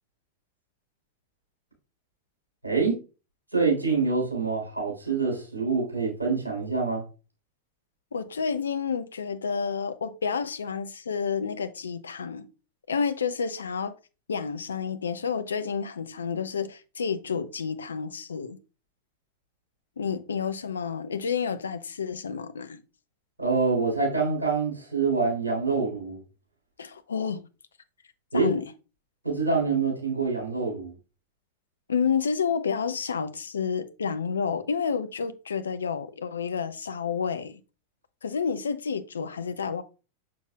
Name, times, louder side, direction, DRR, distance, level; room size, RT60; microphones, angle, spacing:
voice 1, 2.6-3.0 3.5-7.0 23.4-26.2 28.3-28.5 29.2-30.9, right 4 dB, 80° right, 3.7 m, -26 dB
voice 2, 8.1-12.5 12.9-13.9 14.3-18.6 20.0-22.8 26.8-27.5 28.3-28.7 31.9-37.6 38.2-39.8, left 6 dB, 70° left, 0.6 m, -30 dB
7.1 x 6.2 x 2.3 m
figure-of-eight pair, 90°, 0 cm